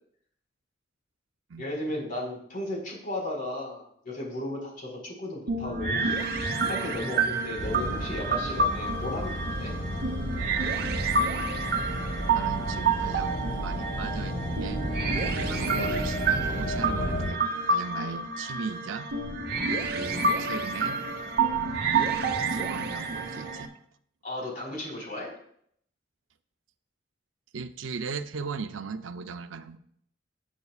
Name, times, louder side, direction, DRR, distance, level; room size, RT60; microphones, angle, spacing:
voice 1, 1.6-6.1 6.7-9.7 24.2-25.3, left 1 dB, 45° left, -2 dB, 4.4 m, -35 dB
sound 1, 5.5-23.7, right 4 dB, 55° right, 1.2 m, -29 dB
sound 2, 7.6-17.3, equal, 75° left, 3.2 m, -33 dB
voice 2, 12.3-14.9 15.4-17.4 17.7-19.1 19.9-21.0 21.5-23.7 27.5-29.8, right 5 dB, 90° right, 9 dB, 0.6 m, -38 dB
17.5 x 8.3 x 2.4 m, 0.68 s
head